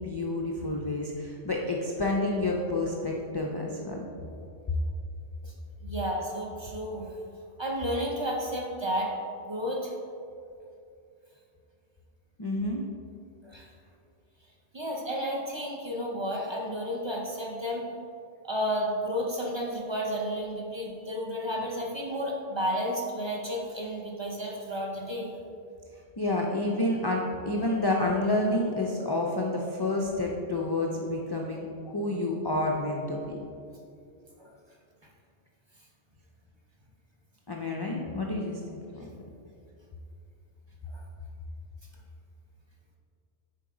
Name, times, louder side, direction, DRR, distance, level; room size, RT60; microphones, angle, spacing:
voice 1, 0.0-4.0 12.4-12.8 26.2-33.4 37.5-39.1, left 2 dB, 45° left, -1 dB, 0.3 m, -29 dB
voice 2, 5.8-7.1 7.6-9.1 9.5-9.9 13.4-13.7 14.7-17.8 18.4-25.3 27.6-27.7 34.4-34.5 39.0-39.1 40.9-41.0, equal, 30° right, -2 dB, 0.7 m, -32 dB
6.9 x 4.5 x 3.8 m, 2.5 s
omnidirectional pair, 1.1 m